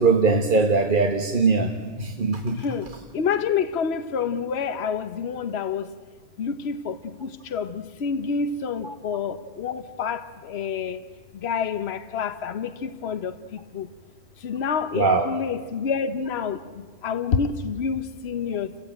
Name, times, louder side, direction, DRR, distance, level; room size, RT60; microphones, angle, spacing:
voice 1, 0.0-1.7 2.0-2.6 8.8-8.9 14.9-15.3, right 4 dB, 45° right, 4 dB, 1.4 m, -21 dB
voice 2, 3.1-5.9 6.4-11.0 11.4-13.3 13.7-13.9 14.4-16.6 17.0-18.7, left 6 dB, 65° left, 11 dB, 1.2 m, -28 dB
29.0 x 15.5 x 9.0 m, 1.5 s
omnidirectional pair, 1.2 m